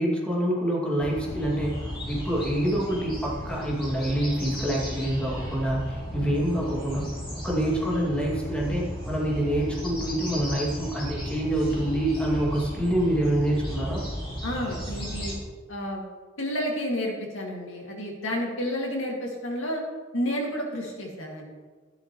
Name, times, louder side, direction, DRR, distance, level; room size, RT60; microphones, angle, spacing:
voice 1, 0.0-7.1 7.4-14.1, right 1 dB, 5° left, -4 dB, 2.4 m, -26 dB
sound 1, 1.0-15.3, equal, 30° left, 4.1 m, -35 dB
voice 2, 14.4-15.4 15.7-16.0 16.4-19.8 20.1-21.5, equal, 75° left, -1 dB, 2.3 m, -30 dB
13.5 x 11.5 x 3.1 m, 1.4 s
head